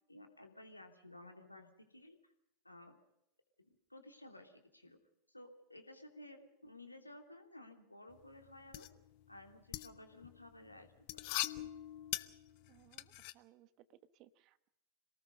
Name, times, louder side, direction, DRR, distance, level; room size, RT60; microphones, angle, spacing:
voice 1, 0.1-2.2 2.6-3.0 3.6-5.0 5.3-8.9 9.3-11.2, left 1 dB, 85° left, 5 dB, 3.0 m, -55 dB
sound 1, 8.1-13.3, left 18 dB, 45° left, 0.9 m, -43 dB
voice 2, 12.7-14.7, right 13 dB, 40° right, 15 dB, 1.2 m, -64 dB
27.0 x 18.5 x 5.5 m, 0.81 s
figure-of-eight pair, 90°, 0 cm